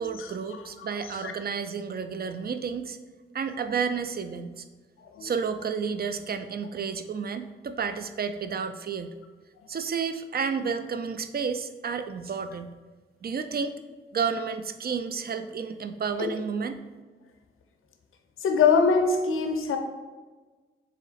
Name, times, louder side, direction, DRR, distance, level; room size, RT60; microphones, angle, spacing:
voice 1, 0.0-3.0 3.3-4.6 5.2-9.1 9.7-12.8 13.2-13.8 14.1-16.8, right 6 dB, 45° right, 0.4 m, -31 dB
voice 2, 18.4-19.8, left 5 dB, 75° left, 0.5 m, -23 dB
3.7 x 3.1 x 4.1 m
cardioid pair, 45°, 21 cm